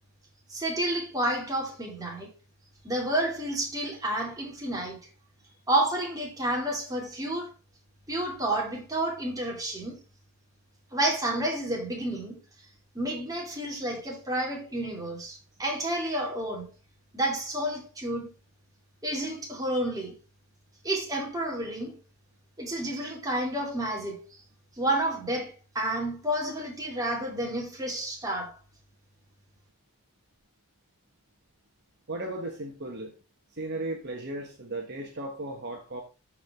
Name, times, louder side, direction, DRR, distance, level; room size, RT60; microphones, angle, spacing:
voice 1, 0.5-2.3 2.8-5.0 5.7-7.5 8.1-10.0 10.9-12.4 12.9-16.7 17.1-18.3 19.0-20.2 20.8-22.0 22.6-24.2 24.8-28.5, right 1 dB, 15° right, 2.8 m, -30 dB
voice 2, 32.1-33.1 33.5-36.0, right 2 dB, 50° right, 1.6 m, -36 dB
12.5 x 5.0 x 3.7 m
head